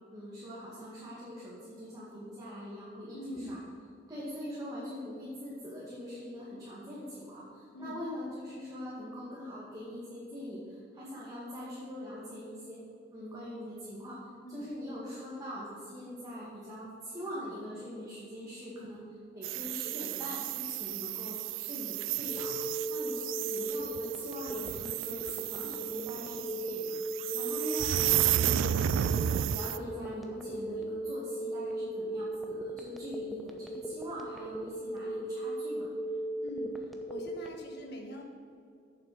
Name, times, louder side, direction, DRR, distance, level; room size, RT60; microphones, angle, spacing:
voice 1, 0.1-3.6 4.1-12.8 13.1-19.0 19.3-23.2 23.5-28.9 29.5-35.9, equal, 20° right, -8 dB, 2.2 m, -42 dB
voice 2, 3.1-3.6 7.7-7.9 14.4-14.6 18.8-18.9 36.4-36.7 37.1-38.2, left 1 dB, 60° left, 1 dB, 1.5 m, -42 dB
sound 1, 19.4-29.8, right 11 dB, 85° right, 0.3 m, -32 dB
Telephone, 22.3-37.5, right 1 dB, ahead, 0.8 m, -37 dB
8.6 x 7.6 x 6.4 m, 2.4 s
head